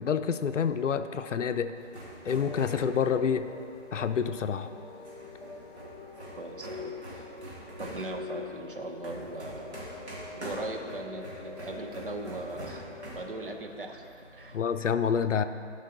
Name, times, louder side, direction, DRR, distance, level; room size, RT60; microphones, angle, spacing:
voice 1, 0.0-1.7 2.3-3.5 3.9-4.7 14.5-15.4, left 7 dB, 75° left, 10 dB, 0.6 m, -28 dB
sound 1, 1.7-14.9, right 1 dB, 60° right, 2.3 m, -46 dB
sound 2, 2.2-13.4, left 4 dB, 45° left, 2.4 m, -45 dB
voice 2, 6.4-7.3 7.8-10.1 10.4-14.6, right 2 dB, 45° right, 3 dB, 0.8 m, -39 dB
13.5 x 5.4 x 4.0 m, 2.3 s
hypercardioid pair, 180°, 37 cm